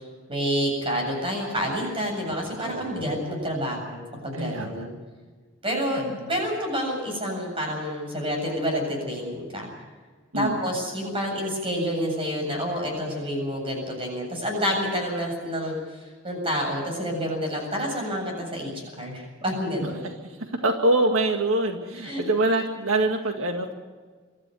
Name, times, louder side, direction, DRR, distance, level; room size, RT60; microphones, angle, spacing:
voice 1, 0.3-4.9 5.6-6.0 6.3-9.7 10.4-20.1 22.0-22.2, equal, 25° right, 1 dB, 7.8 m, -28 dB
voice 2, 2.6-3.1 4.4-4.9 6.0-6.3 10.3-10.6 19.8-19.9 20.4-23.7, right 2 dB, 85° right, 4 dB, 2.0 m, -25 dB
24.0 x 13.5 x 9.4 m, 1.4 s
head